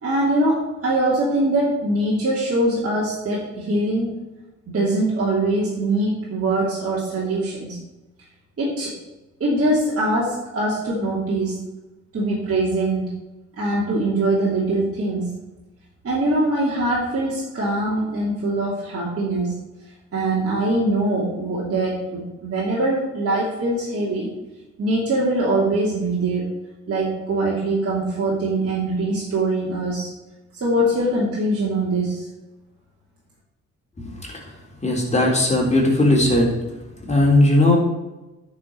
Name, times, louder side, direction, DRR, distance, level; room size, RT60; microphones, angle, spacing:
voice 1, 0.0-4.1 4.7-7.8 8.6-8.9 9.4-11.6 12.1-13.1 13.6-15.4 16.0-19.6 20.1-24.3 24.8-26.5 26.9-30.1 30.5-32.3, right 2 dB, 35° right, -5 dB, 2.9 m, -22 dB
voice 2, 34.8-36.5 37.1-37.8, left 1 dB, 15° left, -2 dB, 3.7 m, -17 dB
9.7 x 5.4 x 6.8 m, 1.1 s
figure-of-eight pair, 40°, 38 cm